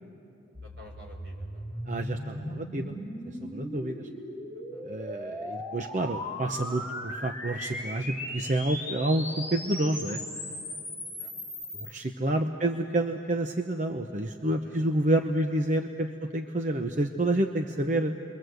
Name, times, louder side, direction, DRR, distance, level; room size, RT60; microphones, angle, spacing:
sound 1, 0.5-11.9, left 1 dB, 10° right, 3.5 m, -38 dB
voice 1, 0.6-1.8 4.5-4.8 11.1-11.3 12.4-12.8 14.6-15.1 16.1-16.3, equal, 70° right, 1 dB, 5.1 m, -53 dB
voice 2, 1.9-3.0 3.3-4.1 4.8-10.2 11.8-18.1, right 1 dB, 40° right, 5 dB, 0.8 m, -29 dB
30.0 x 23.0 x 7.9 m, 2.9 s
head